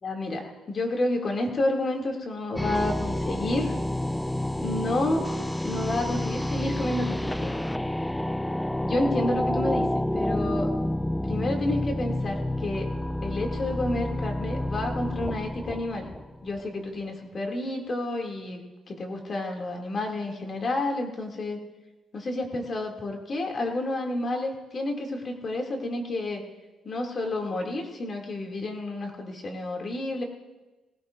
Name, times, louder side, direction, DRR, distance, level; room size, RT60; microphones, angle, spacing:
voice 1, 0.0-3.8 4.6-5.2 5.6-7.6 8.8-9.9 10.1-10.7 11.2-12.9 13.2-16.1 16.4-21.6 22.1-26.4 26.8-30.2, left 2 dB, 45° left, 1 dB, 2.6 m, -30 dB
sound 1, 2.6-16.6, left 1 dB, 5° left, 0.3 m, -29 dB
18.5 x 18.0 x 2.6 m, 1.1 s
cardioid pair, 90°, 0 cm